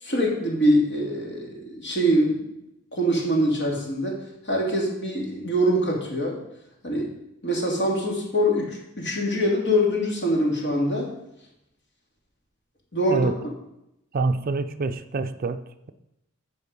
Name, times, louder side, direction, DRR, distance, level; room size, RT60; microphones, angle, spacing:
voice 1, 0.0-2.5 2.9-6.4 6.8-7.1 7.4-11.1 12.9-13.3, equal, 55° left, -2 dB, 2.7 m, -24 dB
voice 2, 14.1-15.9, right 3 dB, 45° right, 10 dB, 0.5 m, -26 dB
15.0 x 5.1 x 5.3 m, 0.84 s
head